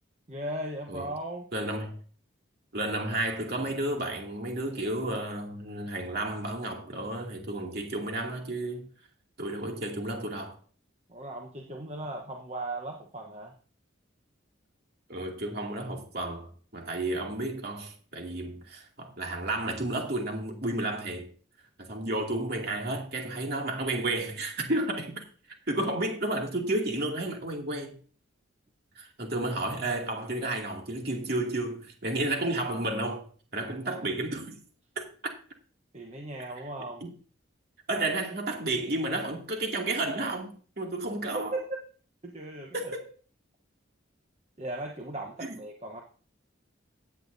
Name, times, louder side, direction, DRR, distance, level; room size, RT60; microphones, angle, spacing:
voice 1, 0.3-1.5 11.1-13.5 33.8-34.1 35.9-37.0 41.3-41.7 42.2-42.9 44.6-46.0, right 1 dB, 30° right, 1.0 m, -37 dB
voice 2, 1.5-2.0 2.7-8.9 9.4-10.6 15.1-21.3 21.8-25.2 25.7-27.9 29.0-33.3 33.5-34.6 35.0-35.3 37.0-37.1 37.9-41.5 42.7-43.0 45.4-45.5, right 2 dB, 50° right, 2.5 m, -32 dB
15.5 x 9.5 x 2.7 m
head